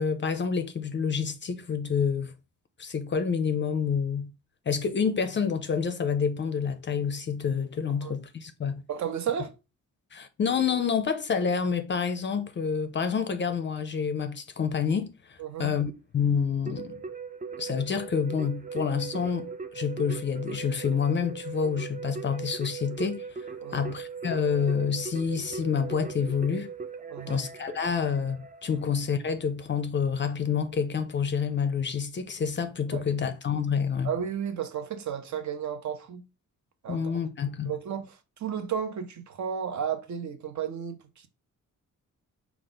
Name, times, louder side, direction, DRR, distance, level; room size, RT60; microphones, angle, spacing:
voice 1, 0.0-2.3 2.8-4.3 4.7-8.8 10.1-17.0 17.6-23.4 23.7-26.7 27.3-34.1 36.9-37.7, left 6 dB, 35° left, 0.4 m, -28 dB
voice 2, 8.9-9.6 15.4-15.7 23.6-23.9 27.1-27.4 32.9-33.0 34.0-36.2 36.8-37.1 37.7-41.3, right 8 dB, 65° right, 0.7 m, -33 dB
Keyboard (musical), 16.7-29.1, right 5 dB, 25° right, 0.4 m, -39 dB
4.9 x 2.4 x 3.8 m
wide cardioid pair, 145°, 31 cm